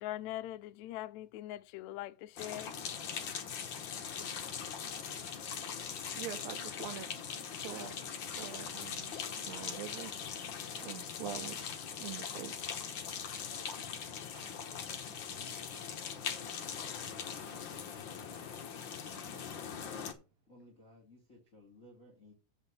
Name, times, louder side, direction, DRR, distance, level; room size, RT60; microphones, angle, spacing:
voice 1, 0.0-2.7, left 14 dB, 85° left, 1.6 m, -42 dB
sound 1, 2.4-20.1, left 7 dB, 65° left, 1.1 m, -41 dB
voice 2, 6.2-7.1 7.5-8.0 8.4-9.1 9.4-10.1 10.7-11.7 12.0-12.5 14.3-14.9 16.4-16.9, right 12 dB, 75° right, 1.6 m, -45 dB
voice 3, 20.5-22.3, left 1 dB, 25° left, 2.5 m, -58 dB
8.1 x 5.0 x 7.0 m
omnidirectional pair, 3.9 m